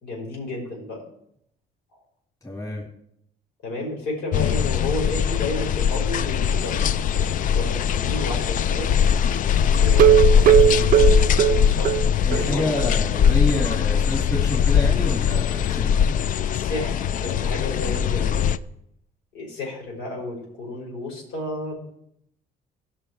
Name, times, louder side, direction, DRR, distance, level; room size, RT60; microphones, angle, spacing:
voice 1, 0.0-1.0 3.6-8.9 9.7-12.0 12.3-12.9 16.5-18.5 19.3-22.0, left 2 dB, 90° left, -2 dB, 5.1 m, -32 dB
voice 2, 2.4-2.9 12.2-16.3, left 1 dB, 20° left, -1 dB, 2.4 m, -29 dB
sound 1, 4.3-18.6, left 8 dB, 50° left, 0.5 m, -21 dB
sound 2, 9.9-12.5 12.8-12.9 13.2-13.3 13.7-13.8, right 11 dB, 55° right, 0.6 m, -17 dB
16.5 x 5.8 x 4.7 m, 0.74 s
cardioid pair, 110°, 17 cm